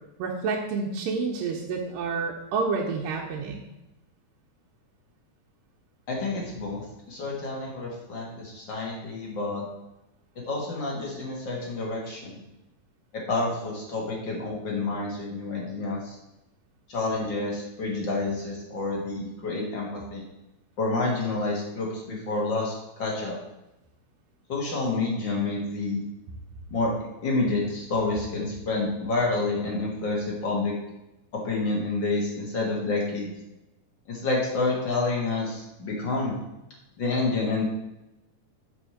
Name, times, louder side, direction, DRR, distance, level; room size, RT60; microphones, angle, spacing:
voice 1, 0.2-3.6, right 4 dB, 90° right, -1 dB, 2.4 m, -29 dB
voice 2, 6.1-9.7 10.3-12.4 13.1-16.2 16.9-20.2 20.8-23.4 24.5-26.1 26.7-30.7 31.3-33.3 34.1-36.4 37.0-37.6, left 3 dB, 45° left, -3 dB, 1.6 m, -29 dB
6.3 x 5.0 x 4.9 m, 0.94 s
omnidirectional pair, 3.9 m